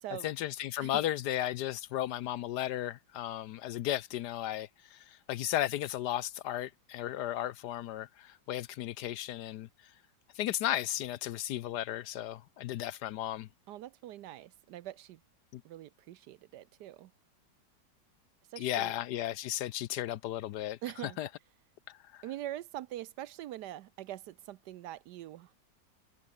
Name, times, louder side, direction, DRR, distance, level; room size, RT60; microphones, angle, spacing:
voice 1, 0.2-9.7 10.4-13.5 15.5-15.6 18.6-21.3 21.9-22.2, left 13 dB, 70° left, 1.1 m, -35 dB
voice 2, 13.7-15.2 15.6-17.1 18.5-19.0 20.8-21.2 22.2-25.5, right 13 dB, 70° right, 1.1 m, -43 dB
omnidirectional pair, 2.0 m